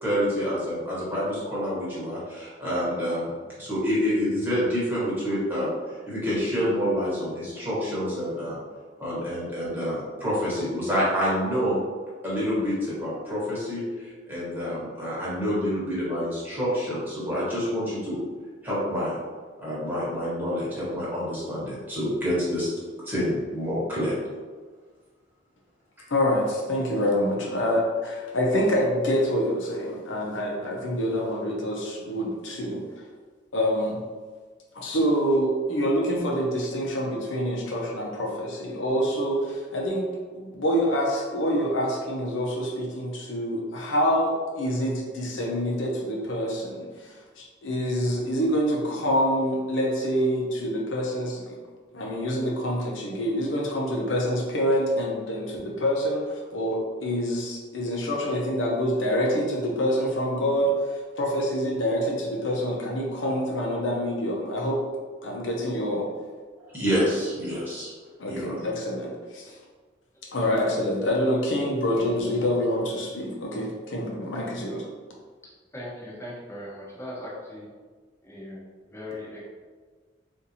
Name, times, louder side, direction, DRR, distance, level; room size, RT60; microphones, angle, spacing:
voice 1, 0.0-3.3 3.6-5.7 6.1-8.6 9.0-11.8 12.2-18.2 18.6-19.2 19.6-22.7 23.0-24.1 66.7-67.9 68.3-68.6, equal, 10° right, -8 dB, 1.3 m, -27 dB
voice 2, 26.1-32.8 33.5-34.0 34.7-51.6 51.9-64.8 65.2-66.1 68.2-69.6 70.3-74.8, equal, 75° left, -2 dB, 0.7 m, -26 dB
voice 3, 75.7-77.7 78.2-79.4, left 1 dB, 15° left, -6 dB, 0.9 m, -39 dB
3.9 x 2.6 x 2.8 m, 1.4 s
head